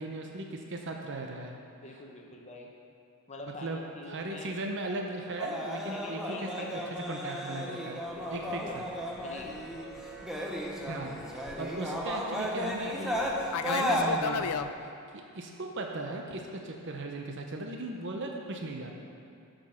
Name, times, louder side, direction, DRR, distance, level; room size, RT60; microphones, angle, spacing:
voice 1, 0.0-1.6 3.6-8.0 8.3-8.8 10.0-10.2 10.8-13.2 13.7-19.0, right 2 dB, 55° right, 1 dB, 0.8 m, -38 dB
voice 2, 1.8-2.7 3.3-4.5 5.9-6.9 8.1-8.8 9.2-9.5, left 2 dB, 30° left, 0 dB, 0.9 m, -45 dB
sound 1, 5.3-14.1, equal, ahead, 0.9 m, -34 dB
Fixed-wing aircraft airplane, 8.2-14.7, left 7 dB, 85° left, 0.4 m, -38 dB
12.5 x 5.3 x 5.7 m, 2.4 s
head